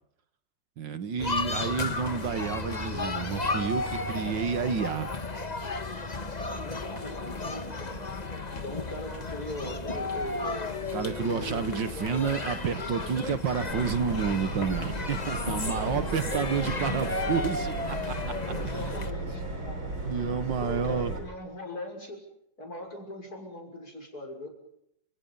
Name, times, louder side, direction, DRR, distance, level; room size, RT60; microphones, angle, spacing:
voice 1, 0.8-5.2 10.9-18.3 18.6-18.9 20.0-21.1, right 6 dB, 70° right, 11 dB, 2.0 m, -30 dB
sound 1, 1.2-19.1, left 3 dB, 25° left, 1.4 m, -34 dB
voice 2, 6.4-8.1 8.5-10.8 11.3-12.5 13.6-13.9 15.6-17.4 18.4-19.8 20.6-22.2 22.6-24.5, left 1 dB, 50° left, 3 dB, 6.8 m, -40 dB
Subway metro underground, 13.7-21.2, right 2 dB, 90° right, 6.5 m, -35 dB
30.0 x 27.5 x 5.6 m, 0.75 s
omnidirectional pair, 2.1 m